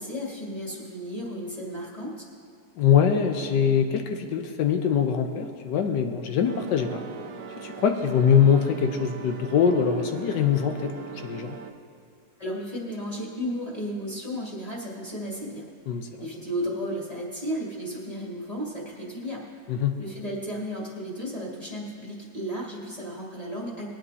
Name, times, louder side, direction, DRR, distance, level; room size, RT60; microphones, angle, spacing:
voice 1, 0.0-2.2 12.4-15.6 16.2-19.4 20.0-23.9, equal, 20° left, -6 dB, 2.6 m, -34 dB
voice 2, 2.8-7.0 7.6-10.9 11.2-11.6 15.9-16.1 19.7-19.9, left 7 dB, 85° left, 5 dB, 1.5 m, -23 dB
sound 1, 6.4-11.7, right 7 dB, 60° right, 0.9 m, -41 dB
22.0 x 8.7 x 2.8 m, 2.3 s
omnidirectional pair, 1.9 m